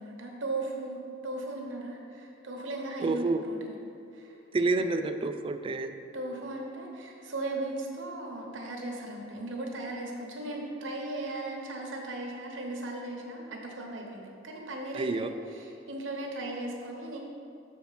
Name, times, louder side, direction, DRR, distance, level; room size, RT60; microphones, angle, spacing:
voice 1, 0.0-3.8 4.1-4.4 6.1-17.2, right 2 dB, 90° right, 0 dB, 1.1 m, -37 dB
voice 2, 3.0-3.4 4.5-5.9 14.9-15.3, right 3 dB, 30° right, 8 dB, 0.3 m, -28 dB
6.6 x 4.3 x 5.7 m, 2.5 s
head